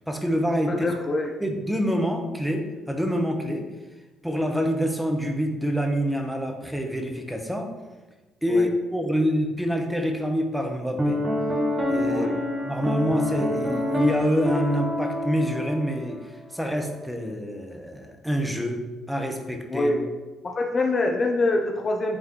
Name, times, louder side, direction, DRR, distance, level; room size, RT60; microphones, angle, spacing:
voice 1, 0.1-0.9 1.4-3.7 4.2-7.7 8.4-11.2 11.9-12.3 12.6-19.9, equal, 5° right, 3 dB, 1.1 m, -26 dB
voice 2, 0.7-1.3 8.5-8.7 12.1-12.4 19.7-20.1 20.6-22.2, left 2 dB, 35° left, 2 dB, 0.7 m, -25 dB
Piano, 11.0-16.3, left 1 dB, 20° right, 1.2 m, -26 dB
8.7 x 3.7 x 3.2 m, 1.2 s
hypercardioid pair, 50°, 0 cm